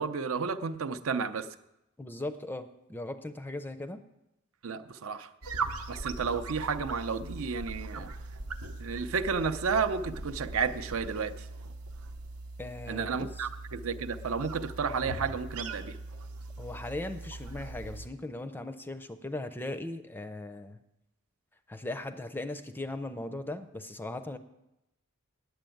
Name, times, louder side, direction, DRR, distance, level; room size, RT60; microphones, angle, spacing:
voice 1, 0.0-1.5 4.6-5.3 5.9-8.1 8.8-11.4 12.9-16.0, right 5 dB, 70° right, 11 dB, 0.6 m, -32 dB
voice 2, 2.0-4.0 12.6-13.5 16.6-20.8 21.7-24.4, left 2 dB, 10° left, 10 dB, 0.4 m, -38 dB
sound 1, 5.4-18.1, right 3 dB, 90° right, 0.9 m, -40 dB
8.8 x 7.8 x 9.1 m, 0.90 s
head